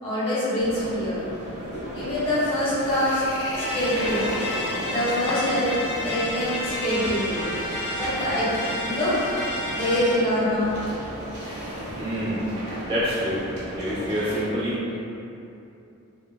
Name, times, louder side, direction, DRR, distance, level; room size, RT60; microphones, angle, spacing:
voice 1, 0.0-1.3 1.7-3.2 3.5-4.4 4.8-5.7 6.0-7.4 7.9-8.5 8.8-9.3 9.7-10.7 11.9-12.0, left 1 dB, 25° left, -10 dB, 0.8 m, -25 dB
sound 1, 0.6-14.5, right 1 dB, 70° right, 0.7 m, -36 dB
sound 2, 2.3-12.1, left 2 dB, 85° left, 0.4 m, -40 dB
sound 3, 3.6-10.1, left 1 dB, 65° left, 0.7 m, -31 dB
voice 2, 12.0-12.4 12.9-13.4 13.7-14.8, equal, 20° right, -10 dB, 0.3 m, -26 dB
2.9 x 2.3 x 2.2 m, 2.7 s
head